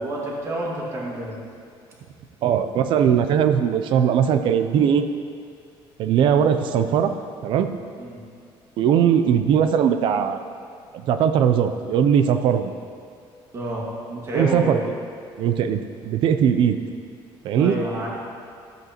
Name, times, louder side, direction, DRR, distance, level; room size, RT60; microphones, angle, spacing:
voice 1, 0.0-1.4 8.0-8.2 13.5-14.9 17.6-18.1, right 1 dB, 30° right, -4 dB, 1.9 m, -29 dB
voice 2, 2.4-5.1 6.0-7.1 7.4-7.8 8.8-10.4 10.9-12.7 14.3-14.8 15.4-16.8 17.4-17.8, right 8 dB, 55° right, 9 dB, 0.5 m, -19 dB
13.0 x 7.9 x 3.0 m, 2.3 s
cardioid pair, 165°, 10 cm